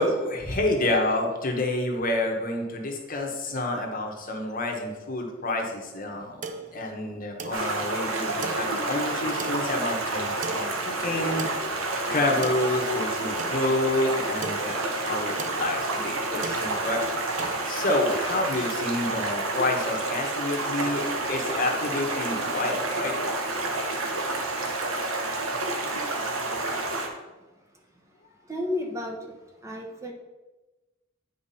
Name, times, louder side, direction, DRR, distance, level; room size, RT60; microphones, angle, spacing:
voice 1, 0.0-6.4 6.7-11.5 11.9-14.8 15.0-17.0 17.7-23.1, left 1 dB, 45° left, 2 dB, 1.2 m, -28 dB
sound 1, 6.1-17.6, right 4 dB, 40° right, 0.5 m, -40 dB
Stream, 7.5-27.1, right 2 dB, 90° right, 1.1 m, -29 dB
voice 2, 28.5-29.3 29.6-30.1, left 1 dB, 15° right, 1 dB, 1.0 m, -32 dB
9.3 x 4.7 x 4.2 m, 1.1 s
head